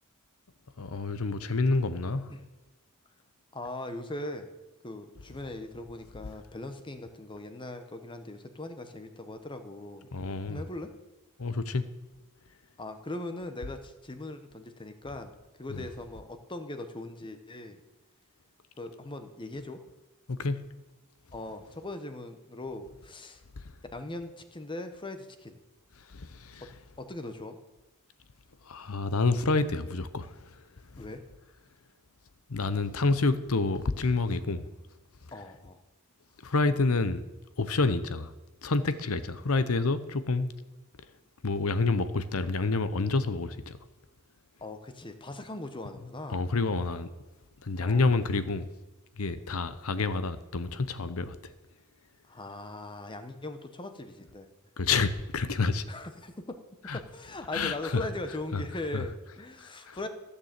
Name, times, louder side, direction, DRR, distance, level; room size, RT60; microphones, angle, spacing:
voice 1, 0.8-2.3 10.1-10.6 11.4-11.8 15.7-15.9 20.3-20.6 26.1-26.6 28.7-30.3 30.9-31.0 32.5-34.7 36.4-37.2 37.6-38.3 38.6-40.5 41.4-43.8 46.3-47.1 47.6-48.7 49.2-51.4 54.8-55.9 56.9-57.0 57.5-58.0 58.5-58.6 58.9-59.1 59.6-60.0, left 3 dB, 70° left, 0.8 m, -28 dB
voice 2, 3.5-4.5 4.8-10.1 10.5-10.9 12.8-15.3 15.6-17.8 18.8-19.8 21.3-23.4 23.9-25.6 27.0-27.6 31.0-31.2 35.3-35.8 44.6-46.4 47.8-48.1 52.2-54.5 55.9-56.6 56.9-60.1, left 2 dB, 20° left, 1.0 m, -40 dB
14.5 x 6.8 x 7.5 m
head